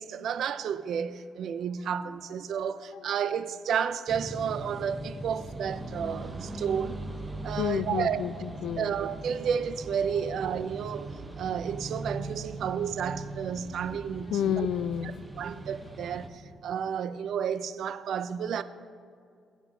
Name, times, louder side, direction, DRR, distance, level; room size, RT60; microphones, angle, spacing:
voice 1, 0.0-7.0 7.4-8.2 8.8-11.1 11.4-14.7 15.4-18.6, right 7 dB, 70° right, 0.4 m, -31 dB
sound 1, 4.1-16.3, right 2 dB, 15° right, 0.8 m, -40 dB
voice 2, 7.6-8.9 10.1-10.2 13.6-13.7 14.1-15.1, left 9 dB, 80° left, 0.3 m, -30 dB
17.0 x 5.9 x 2.7 m
cardioid pair, 90°, 0 cm